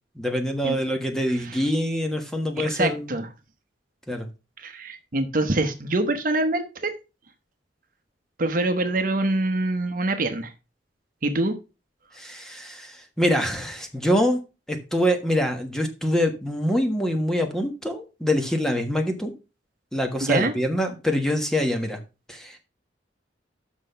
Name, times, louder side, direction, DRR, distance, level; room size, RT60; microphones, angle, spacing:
voice 1, 0.2-3.1 4.1-4.3 12.2-14.4 14.7-19.3 19.9-22.0 22.3-22.6, equal, 5° left, 4 dB, 1.4 m, -25 dB
voice 2, 2.6-3.3 4.6-6.9 8.4-10.5 11.2-11.5 20.2-20.5, right 2 dB, 50° right, 8 dB, 1.0 m, -25 dB
6.3 x 6.1 x 5.6 m, 0.29 s
head